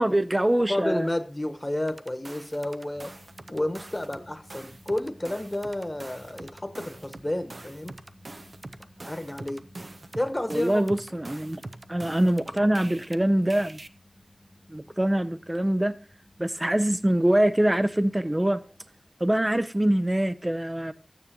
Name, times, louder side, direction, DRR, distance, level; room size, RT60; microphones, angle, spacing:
voice 1, 0.0-1.1 10.5-11.6 11.9-13.8 14.7-16.0 16.4-18.6 19.2-20.9, right 1 dB, 25° right, 0.5 m, -24 dB
voice 2, 0.7-3.1 3.5-8.0 9.0-9.7 10.2-10.8, left 1 dB, 30° left, 1.1 m, -31 dB
sound 1, 1.9-4.2 4.5-13.2 13.5-13.9, right 2 dB, 70° right, 0.6 m, -44 dB
sound 2, 2.9-19.1, left 1 dB, ahead, 0.9 m, -55 dB
13.5 x 9.2 x 2.9 m
wide cardioid pair, 45°, 0 cm